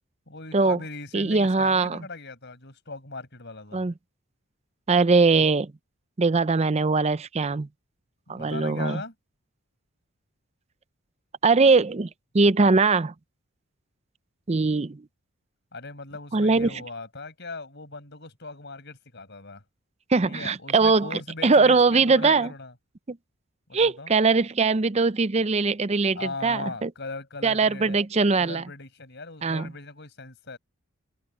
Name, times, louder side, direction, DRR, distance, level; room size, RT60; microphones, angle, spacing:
voice 1, 0.3-3.9 8.4-9.1 15.7-19.6 20.2-22.7 23.7-24.1 26.2-28.0 28.4-30.6, left 3 dB, 50° left, 5.5 m, -39 dB
voice 2, 1.1-2.0 3.7-3.9 4.9-5.7 6.2-7.7 8.3-9.0 11.4-12.1 12.3-13.1 14.5-15.0 16.3-16.7 20.1-22.5 23.1-23.2 23.7-26.9 27.4-28.6 29.4-29.7, right 4 dB, 30° right, 0.5 m, -21 dB
open air
head